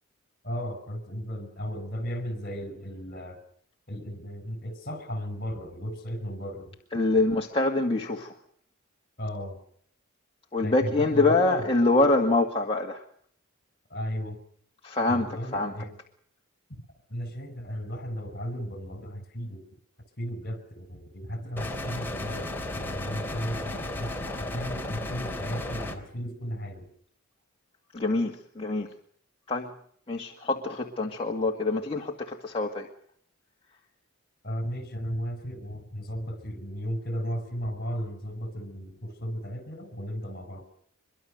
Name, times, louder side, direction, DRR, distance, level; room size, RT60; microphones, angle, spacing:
voice 1, 0.4-3.4 3.9-6.7 9.2-9.6 10.6-11.7 13.9-14.4 15.1-16.0 17.1-19.6 20.2-26.9 34.4-40.6, equal, 45° left, 11 dB, 5.3 m, -35 dB
voice 2, 6.9-8.3 10.5-13.0 14.8-15.7 27.9-28.9 29.5-29.7 30.1-32.9, left 2 dB, 25° left, -1 dB, 2.0 m, -25 dB
sound 1, 21.6-26.0, left 1 dB, 10° left, 3.4 m, -34 dB
24.0 x 23.5 x 6.6 m, 0.63 s
head